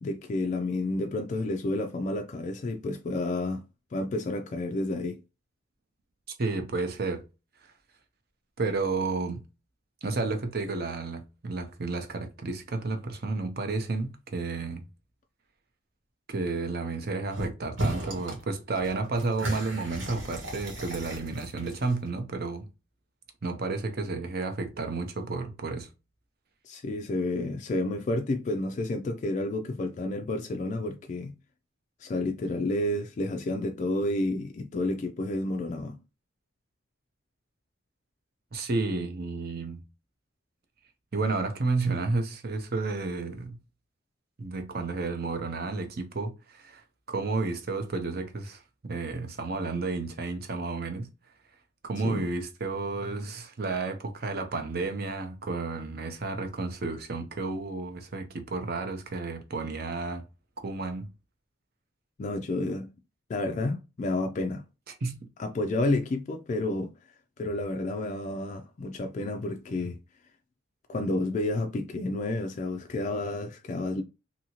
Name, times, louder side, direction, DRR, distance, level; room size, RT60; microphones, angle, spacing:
voice 1, 0.0-3.6 3.9-5.2 26.6-31.3 32.0-36.0 52.0-52.2 62.2-62.9 63.3-64.6 65.4-66.9 67.4-70.0 70.9-74.0, left 2 dB, 40° left, 0.3 m, -30 dB
voice 2, 6.4-7.2 8.6-9.4 10.0-14.8 16.3-22.7 23.4-25.9 38.5-39.8 41.1-43.6 44.4-51.1 51.8-60.2 60.6-61.1 64.9-65.2, right 3 dB, 55° right, 0.6 m, -31 dB
sound 1, 17.3-17.5 17.8-18.4 18.7-22.1, right 1 dB, 85° right, 1.2 m, -34 dB
2.7 x 2.7 x 2.8 m
head